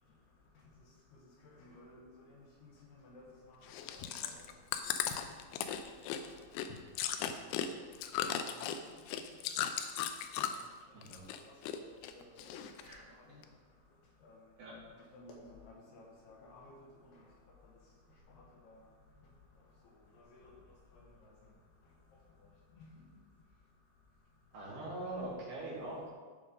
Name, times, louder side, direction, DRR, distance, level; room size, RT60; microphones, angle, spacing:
voice 1, 1.1-4.4 4.8-5.5 5.8-5.9 6.2-6.6 8.6-8.7 10.5-10.7 11.1-12.6 13.1-13.4 14.2-14.4 15.1-17.2 18.3-18.8 20.1-20.5 20.9-21.4 22.8-22.9, left 2 dB, 70° left, -2 dB, 3.0 m, -57 dB
Chewing mastication, 3.6-10.7 11.0-11.8 12.0-12.9 13.4-13.5, left 9 dB, 85° left, 2.9 m, -37 dB
voice 2, 24.5-26.1, right 1 dB, 60° right, -6 dB, 3.8 m, -42 dB
14.5 x 5.1 x 3.8 m, 1.5 s
omnidirectional pair, 5.1 m